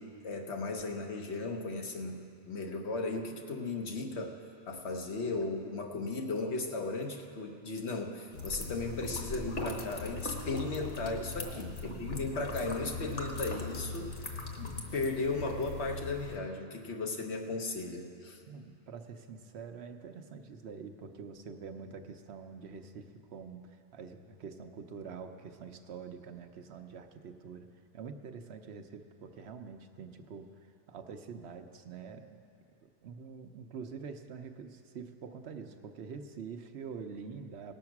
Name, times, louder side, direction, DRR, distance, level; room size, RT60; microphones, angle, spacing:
voice 1, 0.0-4.4 4.7-18.4, left 3 dB, 80° left, 3 dB, 1.3 m, -36 dB
sound 1, 8.3-16.4, left 3 dB, 50° left, 1.3 m, -40 dB
voice 2, 11.4-12.1 14.6-15.0 18.4-27.7 27.9-30.5 30.9-32.4 33.0-37.7, right 5 dB, 75° right, 7 dB, 1.0 m, -46 dB
18.0 x 7.1 x 5.9 m, 2.5 s
omnidirectional pair, 1.1 m